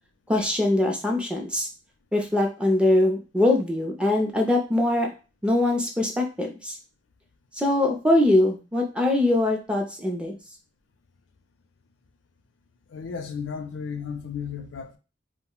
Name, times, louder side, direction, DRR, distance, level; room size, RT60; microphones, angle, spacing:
voice 1, 0.3-1.7 2.1-5.1 5.4-6.8 7.5-10.3, left 1 dB, 5° right, 0.4 m, -22 dB
voice 2, 12.9-15.0, left 6 dB, 75° left, 0.4 m, -34 dB
2.3 x 2.0 x 3.7 m
head